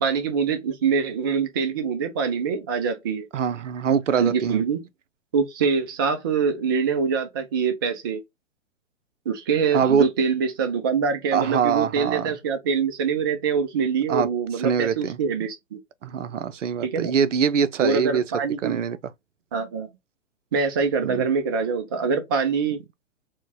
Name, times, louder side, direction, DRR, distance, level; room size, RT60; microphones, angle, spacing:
voice 1, 0.0-3.3 4.1-4.8 5.3-8.2 9.3-15.8 16.8-17.1 17.8-18.8 19.5-19.9 20.5-22.8, right 5 dB, 20° right, 0.3 m, -24 dB
voice 2, 3.3-4.6 9.7-10.1 11.3-12.4 14.1-14.3 14.6-15.2 16.0-18.2 18.6-19.0 21.0-21.3, right 7 dB, 70° right, 0.5 m, -23 dB
4.4 x 2.1 x 2.6 m
figure-of-eight pair, 110°, 38 cm